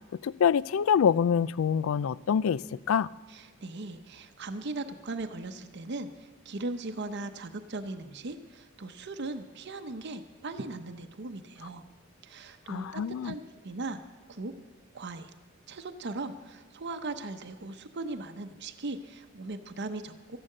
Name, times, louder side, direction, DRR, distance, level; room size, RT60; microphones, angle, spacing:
voice 1, 0.2-3.1 12.7-13.3, left 7 dB, 90° left, 21 dB, 0.4 m, -26 dB
voice 2, 3.3-11.8 12.2-14.0 14.3-14.5 14.9-15.3 15.7-20.4, right 2 dB, 55° right, 8 dB, 0.8 m, -38 dB
13.5 x 11.0 x 6.6 m, 1.3 s
head